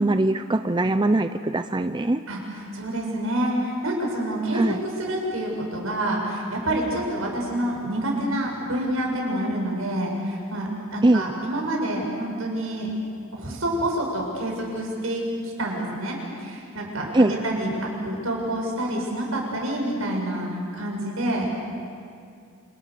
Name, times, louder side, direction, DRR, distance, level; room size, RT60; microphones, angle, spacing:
voice 1, 0.0-2.2 4.5-4.8 11.0-11.3 17.1-17.4, right 2 dB, 20° right, 8 dB, 0.6 m, -21 dB
voice 2, 2.7-12.9 13.3-21.5, right 1 dB, 75° right, -1 dB, 7.7 m, -27 dB
29.0 x 29.0 x 6.8 m, 2.3 s
head